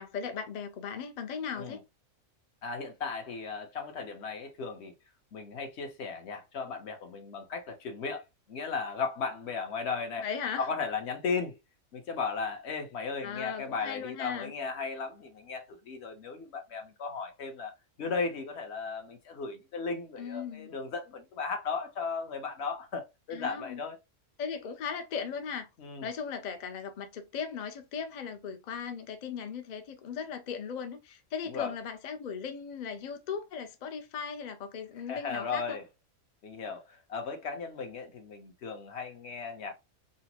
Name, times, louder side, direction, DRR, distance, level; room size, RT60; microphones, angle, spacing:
voice 1, 0.0-1.8 10.2-10.7 13.2-14.5 20.2-20.7 23.3-23.8 24.4-25.7 26.0-35.8, left 6 dB, 70° left, 0.4 m, -37 dB
voice 2, 2.6-4.9 5.3-10.2 10.6-11.5 11.9-17.7 18.0-24.0 25.8-26.1 31.5-31.7 35.1-35.8 36.4-39.7, left 4 dB, 55° left, 1.0 m, -36 dB
3.9 x 2.1 x 2.8 m
omnidirectional pair, 1.4 m